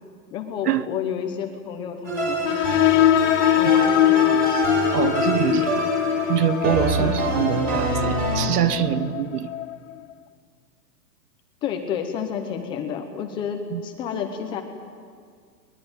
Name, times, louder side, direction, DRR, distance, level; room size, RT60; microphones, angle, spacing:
voice 1, 0.3-3.0 3.5-4.7 7.0-7.2 11.6-14.6, left 7 dB, 10° left, 4 dB, 0.7 m, -31 dB
sound 1, 2.0-8.5, right 2 dB, 20° right, 4.0 m, -26 dB
sound 2, 2.4-9.7, left 11 dB, 50° left, 0.7 m, -22 dB
voice 2, 4.9-6.0 6.3-9.5 13.7-13.8, right 10 dB, 70° right, 15 dB, 1.3 m, -24 dB
21.5 x 21.0 x 9.6 m, 2.1 s
hypercardioid pair, 165°, 49 cm